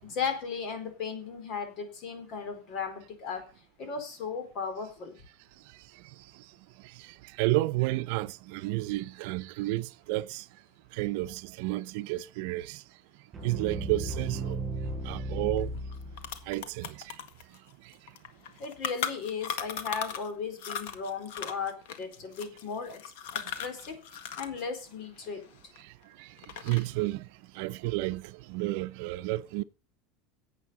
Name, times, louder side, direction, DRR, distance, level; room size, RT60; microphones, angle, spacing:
voice 1, 0.0-3.4 3.8-5.2 18.6-23.0 23.6-24.0 24.4-25.4, left 5 dB, 50° left, 4.3 m, -36 dB
voice 2, 7.4-10.4 10.9-12.8 13.4-14.6 15.0-15.7 16.5-17.1 26.2-26.3 26.6-27.3 27.5-29.6, right 18 dB, 70° right, 0.6 m, -31 dB
sound 1, 13.3-16.5, right 2 dB, 25° right, 5.6 m, -35 dB
sound 2, 15.6-15.7 15.9-20.3 20.6-24.6 24.9-26.0 26.4-27.0, left 8 dB, 80° left, 1.7 m, -37 dB
11.0 x 8.2 x 6.9 m
supercardioid pair, 140°, 0 cm